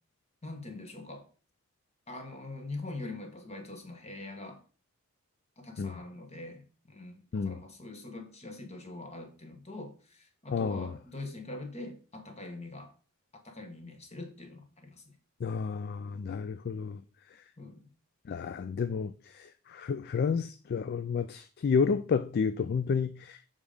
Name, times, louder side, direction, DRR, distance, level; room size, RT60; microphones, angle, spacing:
voice 1, 0.4-1.3 2.1-4.6 5.6-12.9 13.4-15.1 17.6-17.9, left 2 dB, 30° left, 1.2 m, -43 dB
voice 2, 10.5-10.9 15.4-17.0 18.3-23.4, left 5 dB, 45° left, 0.3 m, -31 dB
7.2 x 3.8 x 5.0 m
head